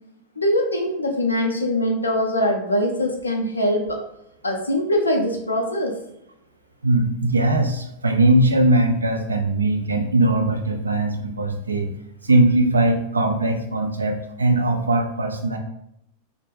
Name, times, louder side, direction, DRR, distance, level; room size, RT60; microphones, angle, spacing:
voice 1, 0.4-4.0 4.4-6.0, left 1 dB, 80° left, 2 dB, 0.5 m, -22 dB
voice 2, 6.8-11.9 12.2-15.6, right 2 dB, 75° right, 4 dB, 0.4 m, -20 dB
2.2 x 2.0 x 3.2 m, 0.77 s
figure-of-eight pair, 90°, 0 cm